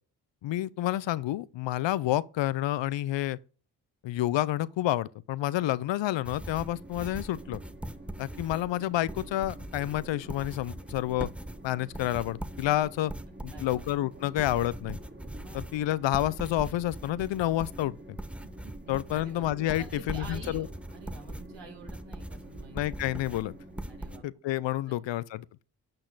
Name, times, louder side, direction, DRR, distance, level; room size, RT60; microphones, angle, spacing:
voice 1, 0.4-3.4 4.0-7.6 8.2-11.3 11.6-13.1 13.4-15.0 15.5-18.2 18.9-20.7 22.7-23.6 24.2-25.4, left 14 dB, 70° left, 0.6 m, -29 dB
sound 1, 6.2-24.2, right 1 dB, 5° right, 0.6 m, -41 dB
Train, 6.4-24.2, right 1 dB, 20° right, 2.6 m, -49 dB
voice 2, 13.5-13.9 15.3-15.6 18.6-19.5 19.8-20.7 20.9-23.0 23.9-24.2 24.8-25.2, right 4 dB, 65° right, 2.5 m, -48 dB
8.9 x 5.8 x 3.9 m
supercardioid pair, 40°, 46 cm